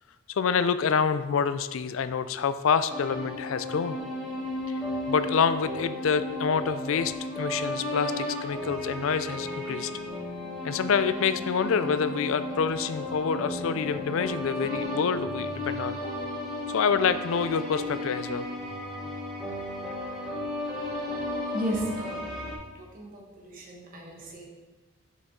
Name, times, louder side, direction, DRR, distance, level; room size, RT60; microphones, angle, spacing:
voice 1, 0.3-4.0 4.7-4.8 5.1-9.9 10.6-16.0 16.7-18.5, left 6 dB, 60° left, 12 dB, 0.4 m, -27 dB
sound 1, 2.9-22.5, left 1 dB, ahead, 1.3 m, -34 dB
voice 2, 21.5-22.5 22.7-24.5, equal, 40° right, -2 dB, 1.3 m, -35 dB
6.9 x 6.5 x 3.8 m, 1.2 s
head